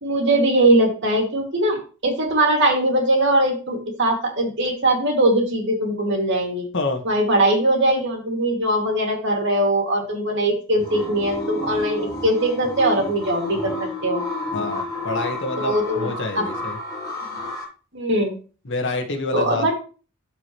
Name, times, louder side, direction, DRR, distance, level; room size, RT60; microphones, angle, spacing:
voice 1, 0.0-6.6 7.0-14.2 15.6-16.1 16.4-16.5 17.3-17.4 17.9-18.4 19.3-19.7, right 1 dB, 60° right, 1 dB, 2.4 m, -21 dB
voice 2, 6.7-7.0 14.5-16.8 18.6-19.7, left 2 dB, 60° left, 3 dB, 1.5 m, -27 dB
sound 1, 10.8-17.6, left 2 dB, 20° left, 3.3 m, -30 dB
13.0 x 4.8 x 3.1 m, 0.37 s
head